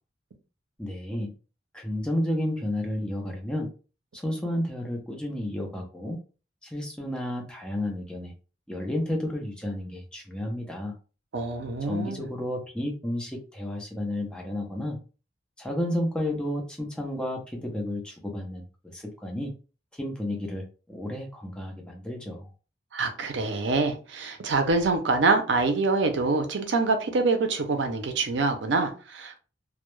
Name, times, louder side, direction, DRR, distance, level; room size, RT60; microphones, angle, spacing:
voice 1, 0.8-1.3 1.7-3.7 4.1-6.2 6.6-8.3 8.7-10.9 11.8-15.0 15.6-19.5 19.9-22.5, left 1 dB, 5° left, 0.5 m, -32 dB
voice 2, 11.3-12.3 22.9-29.4, right 3 dB, 65° right, 0.5 m, -25 dB
2.2 x 2.0 x 3.0 m
head